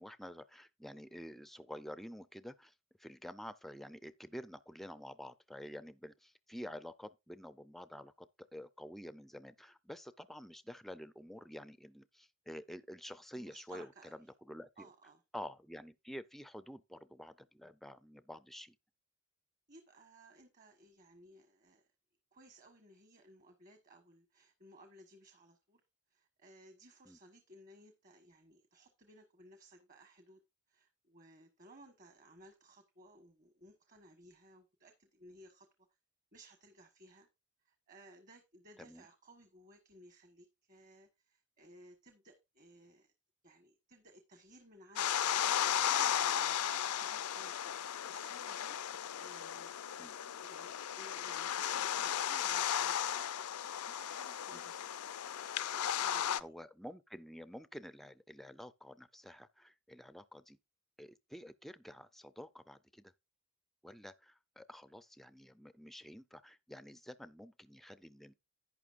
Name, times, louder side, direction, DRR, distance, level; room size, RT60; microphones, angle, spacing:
voice 1, 0.0-2.7 3.0-8.3 8.5-13.9 14.5-14.9 15.3-18.7 27.1-27.2 38.8-39.0 50.0-50.1 54.5-54.6 56.4-60.6 61.0-63.1 63.8-68.3, equal, ahead, 0.4 m, -49 dB
voice 2, 13.3-14.3 14.8-15.2 19.7-21.9 22.3-25.8 26.1-30.4 30.7-35.9 36.3-37.3 37.6-43.1 43.4-45.1 45.6-48.8 49.1-49.8 50.4-53.4 53.9-54.9 55.7-56.5, right 1 dB, 35° right, 1.2 m, -59 dB
sound 1, 45.0-56.4, left 9 dB, 90° left, 0.5 m, -35 dB
11.0 x 9.0 x 2.5 m
head